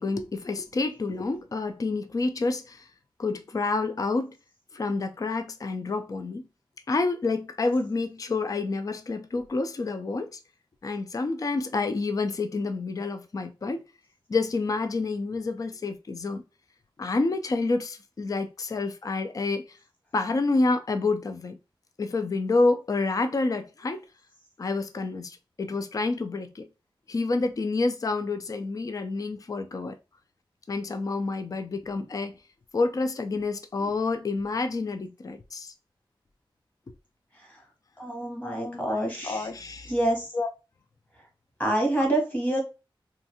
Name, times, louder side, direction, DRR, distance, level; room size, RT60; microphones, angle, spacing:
voice 1, 0.0-2.9 3.2-4.3 4.7-6.4 6.9-10.4 10.8-13.8 14.3-16.4 17.0-19.8 20.1-21.6 22.0-24.0 24.6-26.7 27.1-30.0 30.7-32.4 32.7-35.7 38.4-39.9 40.3-40.5 42.0-42.1, left 3 dB, 40° left, 0.3 m, -28 dB
voice 2, 38.0-39.5 39.9-40.3 41.6-42.6, right 1 dB, 20° left, 1.1 m, -26 dB
2.6 x 2.4 x 2.7 m
wide cardioid pair, 90°, 9 cm